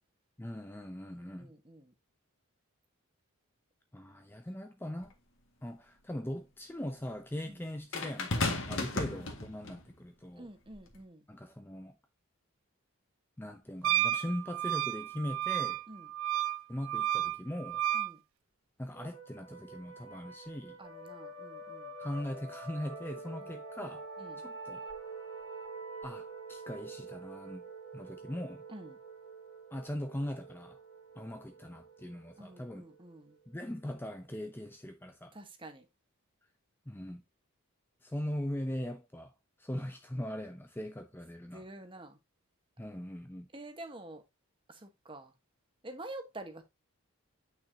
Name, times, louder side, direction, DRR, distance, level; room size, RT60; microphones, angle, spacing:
voice 1, 0.4-1.5 3.9-5.1 5.6-10.5 11.3-12.0 13.4-15.8 16.7-17.8 18.8-20.8 22.0-24.1 24.4-24.8 26.0-27.6 27.9-28.6 29.7-30.8 31.2-32.8 33.5-35.4 36.9-37.2 38.0-39.3 39.6-41.6 42.8-43.5, left 1 dB, 10° left, 0.5 m, -40 dB
voice 2, 1.1-1.9 7.5-7.6 8.9-9.0 10.4-11.2 15.9-16.1 17.9-18.2 20.8-21.9 23.4-23.5 24.2-24.4 28.7-29.0 32.4-33.4 35.3-35.9 41.5-42.2 43.5-44.2 44.7-45.3 45.8-46.6, right 2 dB, 20° right, 1.2 m, -48 dB
sound 1, 5.0-5.1 7.9-9.8 10.7-11.0, left 2 dB, 55° left, 1.8 m, -34 dB
Wind instrument woodwind instrument, 13.8-18.1, right 12 dB, 60° right, 0.3 m, -32 dB
sound 2, 18.9-34.3, right 3 dB, 25° left, 2.1 m, -47 dB
9.0 x 5.9 x 2.8 m
head